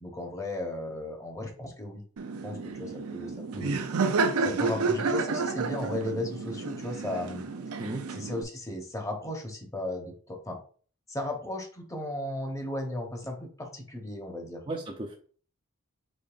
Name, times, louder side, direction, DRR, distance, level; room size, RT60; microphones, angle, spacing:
voice 1, 0.0-2.0 2.4-3.8 4.4-7.4 8.1-10.6 11.1-14.6, left 1 dB, 15° left, 2 dB, 1.0 m, -35 dB
Laughter, 2.2-8.4, right 4 dB, 90° right, 0.6 m, -30 dB
voice 2, 14.7-15.2, right 2 dB, 25° right, -1 dB, 0.6 m, -35 dB
5.3 x 3.8 x 2.5 m, 0.42 s
head